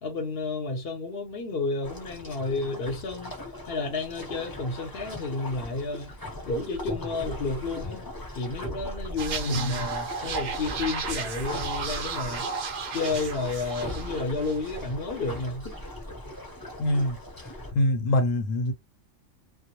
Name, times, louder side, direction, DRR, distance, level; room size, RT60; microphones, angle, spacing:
voice 1, 0.0-3.4 3.6-6.1 6.4-8.0 8.3-12.4 12.9-15.7, left 3 dB, 55° left, 0.8 m, -31 dB
sound 1, 1.8-17.7, left 1 dB, 20° left, 0.6 m, -39 dB
sound 2, 9.2-14.9 15.2-15.4, right 5 dB, 65° right, 0.4 m, -34 dB
voice 2, 9.4-9.9 16.8-17.2 17.7-18.7, left 1 dB, 85° left, 1.0 m, -24 dB
2.2 x 2.0 x 2.9 m
omnidirectional pair, 1.3 m